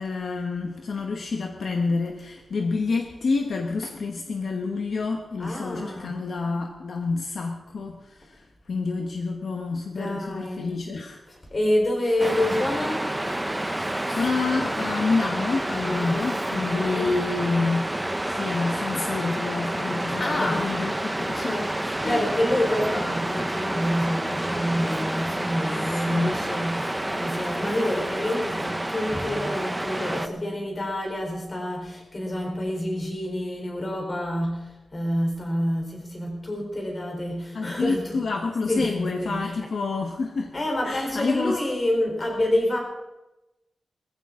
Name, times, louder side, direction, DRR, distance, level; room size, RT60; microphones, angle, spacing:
voice 1, 0.0-11.2 12.0-12.2 13.7-21.6 22.0-22.2 26.1-26.4 37.5-40.5 40.8-41.6, left 4 dB, 65° left, 3 dB, 1.1 m, -28 dB
voice 2, 5.4-6.2 10.0-10.7 11.3-13.1 15.9-17.2 20.2-20.7 21.2-38.3 38.7-39.7 40.5-42.8, left 1 dB, 30° left, 1 dB, 3.8 m, -28 dB
Waves surf, 12.2-30.3, right 1 dB, 10° right, 0.7 m, -29 dB
20.0 x 15.0 x 3.7 m, 0.98 s
wide cardioid pair, 165°, 0 cm